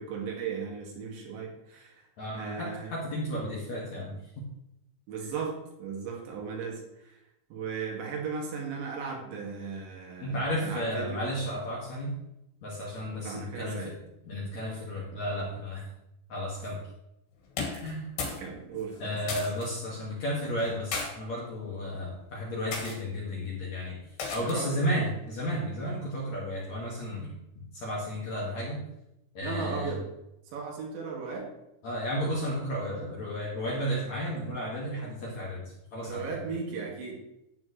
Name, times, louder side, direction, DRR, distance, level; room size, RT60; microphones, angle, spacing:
voice 1, 0.0-2.9 5.1-7.2 7.5-11.2 13.2-13.9 18.2-19.4 24.4-24.8 29.4-30.0 30.5-31.5 36.0-37.2, right 5 dB, 70° right, -2 dB, 4.4 m, -37 dB
voice 2, 2.2-4.5 10.2-12.2 12.6-13.9 14.2-15.9 16.3-16.8 17.8-18.1 19.0-24.0 24.3-27.3 27.7-28.8 29.3-30.0 31.8-36.4, equal, 50° left, -5 dB, 2.6 m, -33 dB
sound 1, 17.5-18.5 18.7-19.7 20.6-21.1 21.8-22.1 22.7-23.0 24.2-24.7, left 4 dB, 70° left, 4.4 m, -35 dB
12.0 x 9.0 x 3.3 m, 0.85 s
omnidirectional pair, 5.4 m